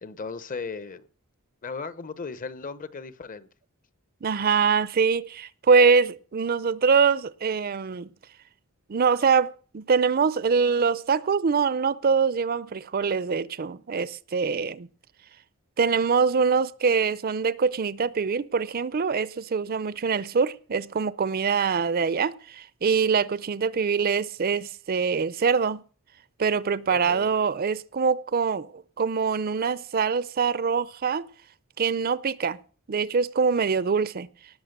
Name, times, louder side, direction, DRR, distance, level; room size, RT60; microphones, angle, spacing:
voice 1, 0.0-1.0 1.6-3.5 26.9-27.3, left 4 dB, 40° left, 0.8 m, -36 dB
voice 2, 4.2-8.1 8.9-14.9 15.8-25.8 26.4-31.3 31.8-32.6 32.9-34.3, right 5 dB, 45° right, 0.5 m, -24 dB
18.5 x 6.5 x 6.6 m
head